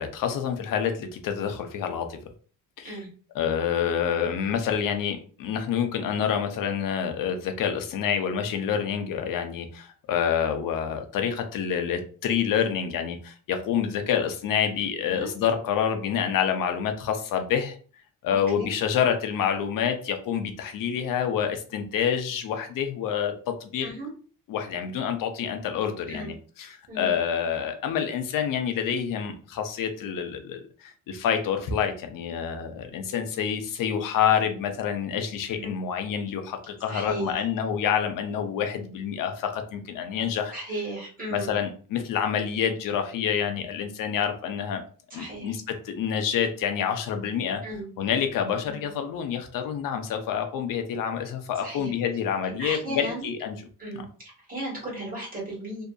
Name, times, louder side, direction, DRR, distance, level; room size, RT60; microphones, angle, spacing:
voice 1, 0.0-2.2 2.8-3.0 3.3-17.8 18.2-23.9 24.5-40.5 41.3-44.8 45.1-47.6 48.0-53.6 53.9-54.0, left 8 dB, 65° left, 6 dB, 0.6 m, -27 dB
voice 2, 23.8-24.1 26.1-26.3 26.9-27.1 35.5-35.7 36.9-37.4 40.5-41.5 45.1-45.5 47.6-47.9 51.6-51.9 52.6-53.3 53.8-55.8, right 1 dB, 25° right, -5 dB, 1.4 m, -35 dB
2.7 x 2.4 x 2.3 m, 0.41 s
cardioid pair, 160°, 35 cm